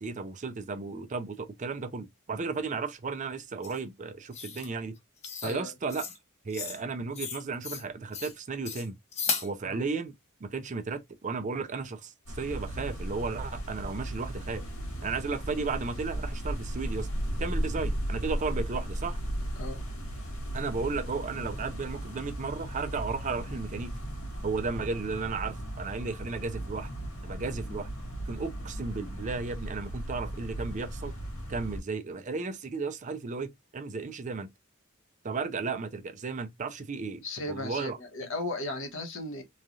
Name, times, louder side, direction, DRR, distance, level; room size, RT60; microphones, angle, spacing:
voice 1, 0.0-5.0 5.4-6.1 6.4-9.0 9.4-10.1 10.4-14.6 15.0-17.1 17.4-19.2 20.5-24.0 24.4-26.9 27.2-27.9 28.3-31.2 31.5-34.5 35.2-37.2 37.5-38.0, right 4 dB, 35° right, 0.4 m, -34 dB
sound 1, 3.6-3.8 4.3-4.7 5.2-5.6 5.9-6.2 6.5-6.8 7.1-7.8 8.1-8.3 8.6-9.5, left 6 dB, 30° left, 0.6 m, -35 dB
voice 2, 5.4-5.7 9.6-9.8 19.6-19.9 37.2-39.4, left 2 dB, 65° left, 1.0 m, -36 dB
sound 2, 12.3-31.8, right 1 dB, 90° left, 1.3 m, -36 dB
3.1 x 2.3 x 2.5 m
head